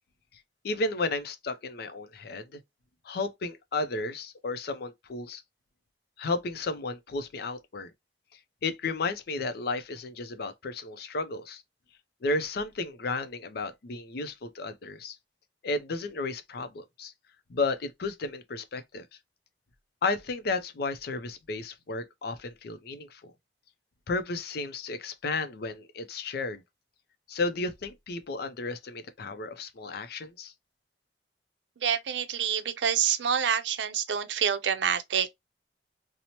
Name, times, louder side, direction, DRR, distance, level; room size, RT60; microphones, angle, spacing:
voice 1, 0.6-2.6 3.0-5.4 6.2-7.9 8.6-11.6 12.2-15.2 15.6-17.1 17.5-19.1 20.0-23.3 24.1-26.6 27.3-30.5, left 3 dB, 60° left, 0.5 m, -33 dB
voice 2, 31.8-35.3, right 8 dB, 80° right, 0.5 m, -27 dB
2.8 x 2.0 x 2.8 m
head